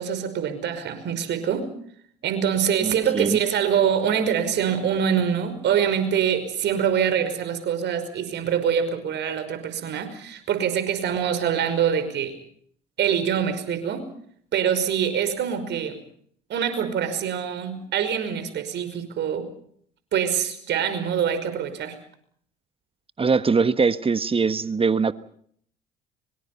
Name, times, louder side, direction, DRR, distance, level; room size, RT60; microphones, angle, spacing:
voice 1, 0.0-1.7 2.2-12.4 13.0-14.1 14.5-16.0 16.5-19.5 20.1-22.0, right 8 dB, 55° right, 10 dB, 5.4 m, -24 dB
voice 2, 2.8-3.4 23.2-25.1, right 5 dB, 25° right, 13 dB, 1.4 m, -22 dB
24.5 x 24.5 x 5.7 m, 0.62 s
hypercardioid pair, 65°, 21 cm